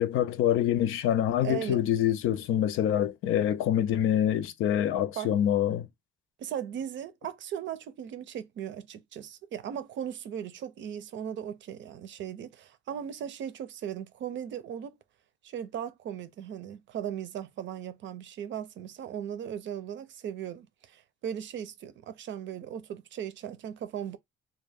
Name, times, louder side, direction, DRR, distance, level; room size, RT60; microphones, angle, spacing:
voice 1, 0.0-5.9, left 10 dB, 85° left, 0.4 m, -26 dB
voice 2, 1.4-1.9 5.2-5.3 6.4-15.0 15.4-24.2, right 9 dB, 65° right, 0.5 m, -37 dB
2.3 x 2.1 x 3.4 m
cardioid pair, 90°, 21 cm